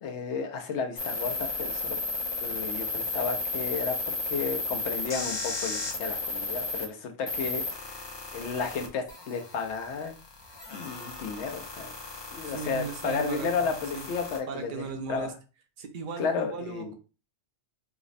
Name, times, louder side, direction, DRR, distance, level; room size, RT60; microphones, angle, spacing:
voice 1, 0.0-2.0 2.4-10.1 10.7-15.3 16.2-16.9, left 5 dB, 80° left, 4 dB, 0.9 m, -33 dB
sound 1, 1.0-6.9 7.3-14.4, left 3 dB, 35° left, 0.5 m, -34 dB
voice 2, 12.4-14.0 14.5-15.3 15.8-16.9, right 5 dB, 55° right, 6 dB, 0.7 m, -37 dB
4.8 x 2.0 x 2.4 m, 0.33 s
omnidirectional pair, 1.1 m